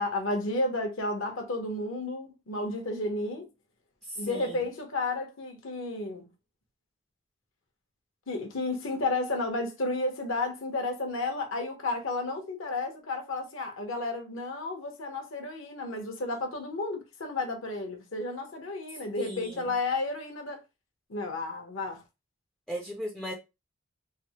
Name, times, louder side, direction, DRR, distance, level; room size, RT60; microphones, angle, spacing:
voice 1, 0.0-3.5 4.2-6.3 8.3-20.6 21.1-22.0, left 2 dB, 65° left, 0.8 m, -32 dB
voice 2, 4.0-4.6 19.2-19.7 22.7-23.3, equal, ahead, 0.4 m, -37 dB
3.3 x 2.0 x 2.8 m
head